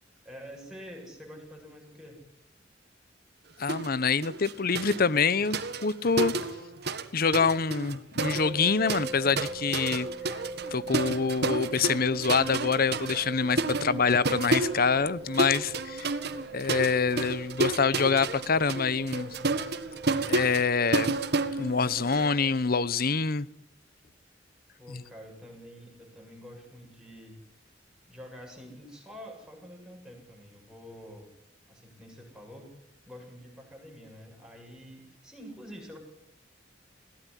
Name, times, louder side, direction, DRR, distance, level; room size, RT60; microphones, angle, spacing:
voice 1, 0.2-2.2 16.3-16.9 24.8-27.4 28.1-31.3 31.7-32.7 33.1-36.0, equal, 5° right, 0 dB, 7.8 m, -47 dB
voice 2, 3.6-6.3 7.1-10.1 10.7-16.1 16.5-19.3 20.3-21.1 21.6-23.5 24.9-25.0, left 5 dB, 55° left, 19 dB, 0.9 m, -26 dB
sound 1, 3.7-3.9 4.2-7.1 7.3-22.3, right 3 dB, 65° right, 1.7 m, -31 dB
sound 2, 8.2-22.6, right 2 dB, 30° right, 4.9 m, -42 dB
22.0 x 17.0 x 10.0 m, 0.82 s
head